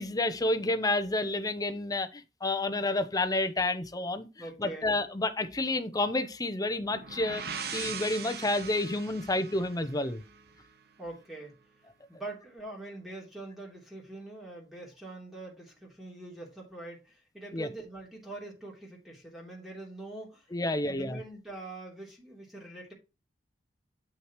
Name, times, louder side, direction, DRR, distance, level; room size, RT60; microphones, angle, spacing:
voice 1, 0.0-4.3 4.6-7.4 7.7-10.2 17.5-17.7 20.5-21.2, left 2 dB, 20° left, 0.7 m, -30 dB
voice 2, 4.4-4.9 11.0-11.6 12.1-22.9, right 2 dB, ahead, 3.0 m, -44 dB
sound 1, 6.8-10.6, right 6 dB, 65° right, 1.1 m, -40 dB
8.0 x 6.2 x 3.0 m
head